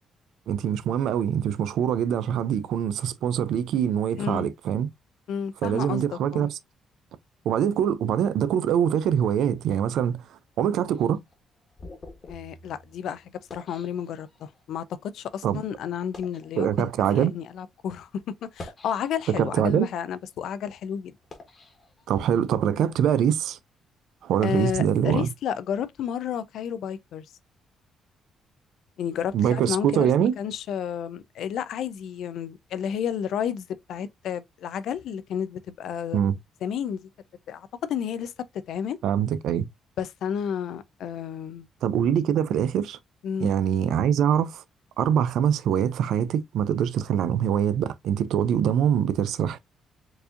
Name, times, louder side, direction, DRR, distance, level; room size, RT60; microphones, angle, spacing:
voice 1, 0.5-4.9 5.6-6.6 7.5-10.2 10.6-11.2 15.4-15.6 16.6-17.3 19.3-19.9 22.1-23.6 24.2-25.3 29.3-30.3 36.1-36.4 39.0-39.7 41.8-43.0 43.4-44.6 45.0-49.6, right 9 dB, 80° right, 0.4 m, -24 dB
voice 2, 4.2-4.5 5.3-6.0 6.3-6.5 12.3-13.2 13.5-16.9 17.1-21.1 24.4-27.2 29.0-36.2 36.6-37.0 37.5-38.3 38.7-39.0 40.0-41.7 43.2-43.5, left 8 dB, 75° left, 0.4 m, -31 dB
sound 1, 10.9-14.6 15.3-15.4 16.0-16.5 17.3-17.4 18.4-19.5 20.0-22.5, left 2 dB, 40° left, 1.3 m, -47 dB
4.6 x 2.7 x 2.5 m
cardioid pair, 90°, 0 cm